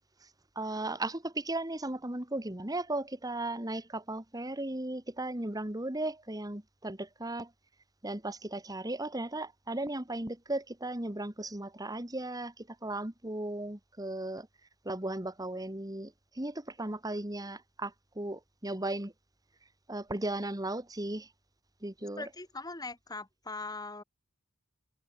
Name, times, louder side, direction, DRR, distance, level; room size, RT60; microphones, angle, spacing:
voice 1, 0.5-7.5 8.0-14.5 14.8-19.1 19.9-21.3 21.8-22.3, right 2 dB, 20° right, 1.6 m, -36 dB
voice 2, 22.2-24.0, left 3 dB, 20° left, 4.7 m, -41 dB
head